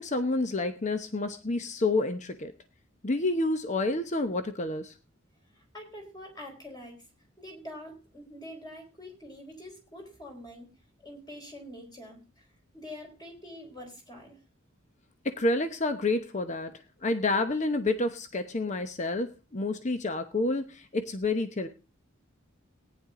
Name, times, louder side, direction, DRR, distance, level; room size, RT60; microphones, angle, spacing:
voice 1, 0.0-2.5 3.0-4.9 15.2-16.7 17.0-21.7, left 2 dB, 35° left, 8 dB, 0.9 m, -29 dB
voice 2, 5.5-7.0 7.4-10.7 11.0-12.5 12.7-14.4, left 1 dB, 20° left, 1 dB, 4.4 m, -45 dB
18.0 x 10.0 x 3.7 m, 0.30 s
head